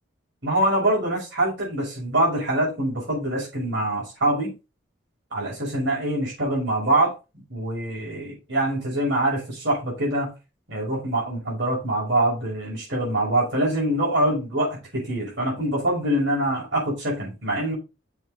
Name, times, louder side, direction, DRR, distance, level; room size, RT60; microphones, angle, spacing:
voice 1, 0.4-4.5 5.3-7.1 7.5-10.3 10.7-17.7, right 1 dB, 65° right, 5.9 m, -24 dB
7.6 x 7.1 x 4.2 m
head